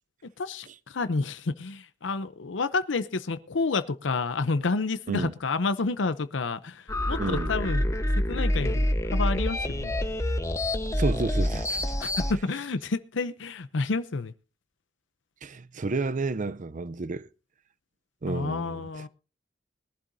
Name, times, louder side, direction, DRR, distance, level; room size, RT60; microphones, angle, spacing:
voice 1, 0.4-7.8 8.3-10.0 12.0-14.3 18.3-19.1, left 3 dB, 80° left, 0.7 m, -29 dB
sound 1, 6.9-12.3, left 1 dB, 15° left, 1.0 m, -27 dB
voice 2, 7.2-7.5 10.9-11.9 15.4-17.3 18.2-19.0, right 3 dB, 45° right, 0.6 m, -31 dB
21.5 x 11.5 x 2.7 m
head